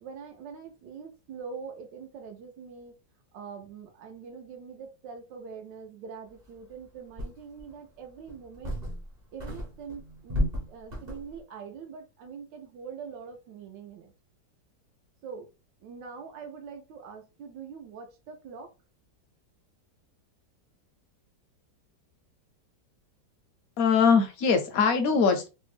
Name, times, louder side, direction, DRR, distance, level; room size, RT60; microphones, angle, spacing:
voice 1, 0.0-3.0 3.3-8.8 9.3-14.1 15.2-15.5 15.8-18.7, right 6 dB, 85° right, 1.3 m, -43 dB
sound 1, 6.5-6.6 7.2-7.7 8.3-9.1 9.4-11.4, equal, 35° right, 0.7 m, -33 dB
voice 2, 23.8-25.5, left 5 dB, 70° left, 0.8 m, -22 dB
3.3 x 2.1 x 3.2 m
omnidirectional pair, 1.9 m